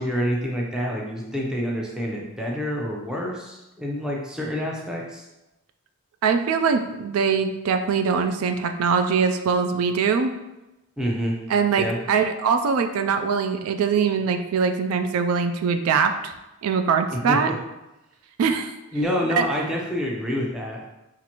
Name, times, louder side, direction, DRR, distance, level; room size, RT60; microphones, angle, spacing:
voice 1, 0.0-5.3 11.0-11.4 11.8-12.0 17.3-17.4 18.9-20.9, equal, 5° right, -2 dB, 0.5 m, -27 dB
voice 2, 6.2-10.3 11.5-16.3 16.6-17.5 18.4-18.7 19.4-19.5, right 5 dB, 70° right, 7 dB, 0.3 m, -22 dB
5.4 x 2.5 x 2.9 m, 0.97 s
head